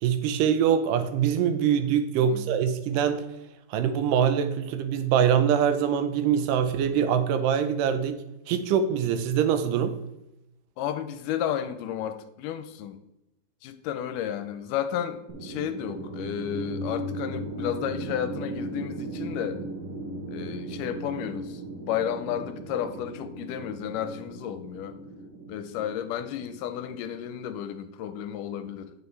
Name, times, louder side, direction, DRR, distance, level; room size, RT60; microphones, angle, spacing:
voice 1, 0.0-3.3 3.7-10.0, right 8 dB, 85° right, 2.2 m, -24 dB
voice 2, 10.8-13.0 13.6-19.6 20.3-25.0 25.5-28.9, left 10 dB, 85° left, 2.1 m, -32 dB
sound 1, 15.3-27.4, right 1 dB, 55° right, 1.4 m, -37 dB
9.4 x 6.1 x 3.2 m
omnidirectional pair, 3.8 m